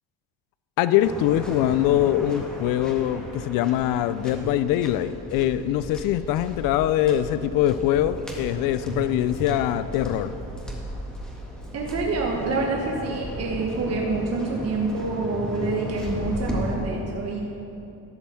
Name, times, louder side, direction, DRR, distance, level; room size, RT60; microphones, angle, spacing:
voice 1, 0.8-10.3, left 12 dB, 80° left, 13 dB, 0.5 m, -23 dB
Waves surf, 1.0-16.7, right 1 dB, ahead, 1.8 m, -35 dB
voice 2, 11.7-17.4, right 3 dB, 50° right, -1 dB, 1.3 m, -27 dB
13.0 x 5.4 x 7.6 m, 2.9 s
cardioid pair, 115°, 33 cm